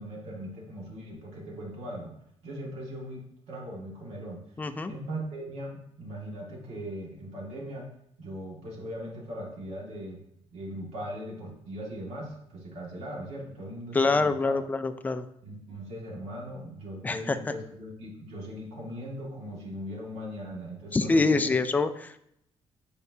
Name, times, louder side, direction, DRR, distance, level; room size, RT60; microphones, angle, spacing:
voice 1, 0.0-2.1 2.4-3.2 3.5-4.4 4.9-7.9 8.2-10.2 10.5-14.5 15.4-21.5, equal, 75° right, -3 dB, 2.0 m, -39 dB
voice 2, 4.6-4.9 13.9-15.2 17.0-17.4 20.9-22.2, left 3 dB, 15° left, 10 dB, 0.4 m, -25 dB
8.4 x 4.5 x 2.7 m, 0.73 s
cardioid pair, 165°, 11 cm